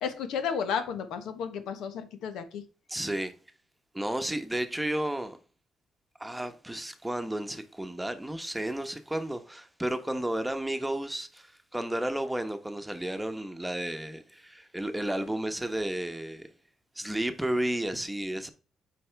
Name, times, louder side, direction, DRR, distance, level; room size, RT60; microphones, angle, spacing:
voice 1, 0.0-2.6, left 7 dB, 85° left, 1.1 m, -33 dB
voice 2, 2.9-3.3 3.9-5.4 6.2-16.5 17.0-18.5, right 1 dB, 5° right, 1.1 m, -32 dB
8.5 x 4.9 x 3.4 m
cardioid pair, 80°, 0 cm